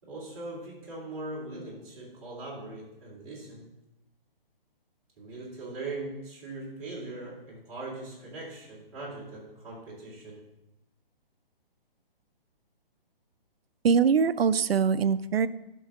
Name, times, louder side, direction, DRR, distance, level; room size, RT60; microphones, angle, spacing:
voice 1, 0.0-3.7 5.2-10.4, right 2 dB, 35° right, -5 dB, 3.6 m, -40 dB
voice 2, 13.8-15.5, right 6 dB, 85° right, 15 dB, 0.6 m, -23 dB
12.0 x 5.5 x 3.6 m, 0.90 s
hypercardioid pair, 155°, 29 cm